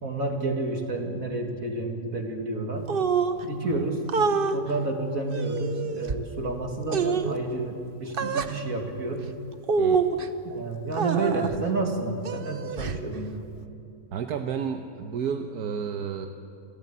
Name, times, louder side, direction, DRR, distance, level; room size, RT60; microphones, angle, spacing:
voice 1, 0.0-2.9 3.4-9.3 10.4-13.4, right 2 dB, 60° right, 3 dB, 2.8 m, -30 dB
sound 1, 2.9-3.4 4.1-4.6 5.3-6.2 6.9-7.3 8.1-8.5 9.6-10.3 10.9-11.6 12.2-13.0, right 5 dB, 40° right, 0.9 m, -26 dB
voice 2, 14.1-16.3, right 7 dB, 80° right, 5 dB, 1.5 m, -31 dB
29.5 x 13.5 x 8.5 m, 2.8 s
omnidirectional pair, 1.7 m